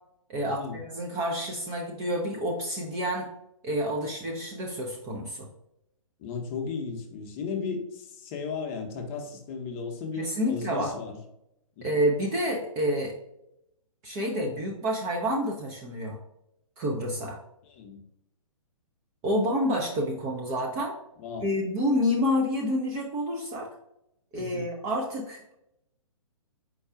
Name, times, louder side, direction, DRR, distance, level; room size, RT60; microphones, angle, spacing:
voice 1, 0.3-3.3 3.6-5.5 10.1-10.9 11.8-13.1 14.0-16.2 16.8-17.4 19.2-21.0 21.4-23.7 24.3-25.5, equal, 15° right, 0 dB, 0.4 m, -28 dB
voice 2, 6.2-11.2 11.8-11.9 17.7-18.0 21.2-21.5 24.3-24.7, left 5 dB, 25° left, 3 dB, 0.7 m, -35 dB
4.6 x 2.3 x 4.7 m, 0.81 s
figure-of-eight pair, 125°, 18 cm